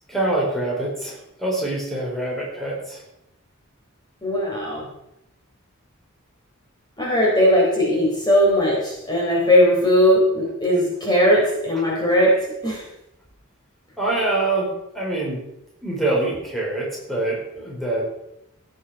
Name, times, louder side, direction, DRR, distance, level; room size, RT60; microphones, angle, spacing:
voice 1, 0.1-3.0 14.0-14.7 14.9-15.4 15.8-18.0, right 2 dB, ahead, -5 dB, 4.3 m, -25 dB
voice 2, 4.2-4.9 7.0-12.8, equal, 20° left, -4 dB, 3.8 m, -19 dB
16.5 x 9.4 x 4.8 m, 0.83 s
head